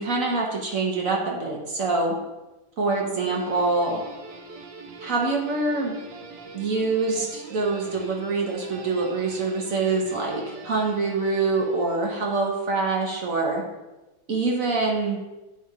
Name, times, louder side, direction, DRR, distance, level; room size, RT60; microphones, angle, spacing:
voice 1, 0.0-2.1 2.8-4.0 5.0-5.9 6.5-13.6 14.3-15.2, right 3 dB, 50° right, -1 dB, 1.4 m, -25 dB
Guitar, 3.2-12.6, right 3 dB, 70° right, 1.5 m, -42 dB
8.4 x 3.3 x 4.9 m, 1.0 s
omnidirectional pair, 1.9 m